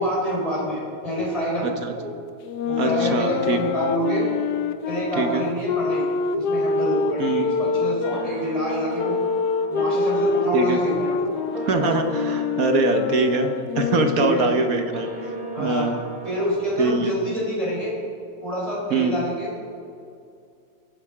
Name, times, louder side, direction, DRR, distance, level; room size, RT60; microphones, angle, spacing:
voice 1, 0.0-2.1 2.7-4.3 4.9-6.1 6.3-9.1 9.7-11.4 14.1-14.5 15.5-15.9 16.2-18.0 18.4-19.5, equal, 15° right, -6 dB, 4.4 m, -27 dB
sound 1, 2.4-8.3 9.0-14.4, left 5 dB, 65° left, 1.1 m, -25 dB
voice 2, 2.8-3.6 5.2-5.4 7.2-7.5 10.5-10.8 11.6-15.3 15.6-16.0 16.8-17.1 18.9-19.1, right 3 dB, 55° right, 6 dB, 1.3 m, -23 dB
sound 2, 6.9-16.5, right 2 dB, 85° right, 3.8 m, -35 dB
23.0 x 9.0 x 5.0 m, 2.4 s
omnidirectional pair, 2.1 m